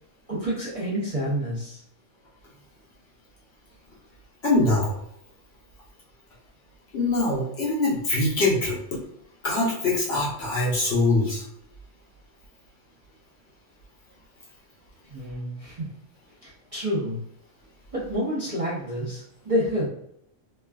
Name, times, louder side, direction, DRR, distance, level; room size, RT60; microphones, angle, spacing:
voice 1, 0.3-1.8 15.1-15.8 16.4-17.2 17.9-19.8, equal, 35° right, -9 dB, 0.7 m, -28 dB
voice 2, 4.4-5.0 6.9-9.0 9.4-11.5, left 2 dB, 55° left, -5 dB, 0.9 m, -23 dB
3.2 x 2.3 x 2.3 m, 0.74 s
omnidirectional pair, 1.4 m